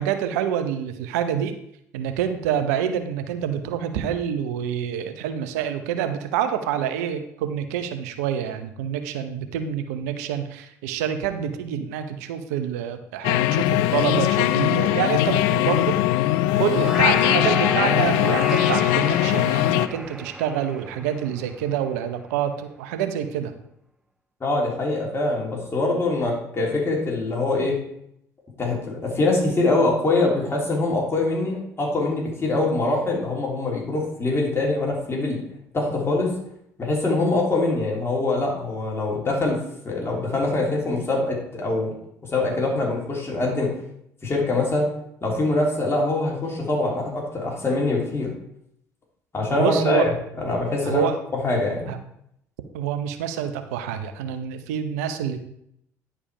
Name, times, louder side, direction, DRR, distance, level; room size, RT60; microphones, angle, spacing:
voice 1, 0.0-1.5 1.9-15.9 16.6-23.5 49.6-50.1 50.8-51.2 51.9-52.0 52.7-55.4, right 9 dB, 80° right, 8 dB, 0.8 m, -27 dB
sound 1, 13.2-19.9, left 15 dB, 75° left, 0.4 m, -20 dB
sound 2, 16.6-22.1, right 1 dB, 10° right, 0.8 m, -32 dB
voice 2, 24.4-27.7 28.6-35.4 35.7-36.3 36.8-39.6 39.8-41.9 42.3-43.7 44.2-44.9 45.2-48.3 49.3-50.0 50.4-51.1 51.4-51.9, left 2 dB, 30° left, -2 dB, 3.4 m, -23 dB
10.0 x 4.9 x 5.0 m, 0.74 s
hypercardioid pair, 60°, 8 cm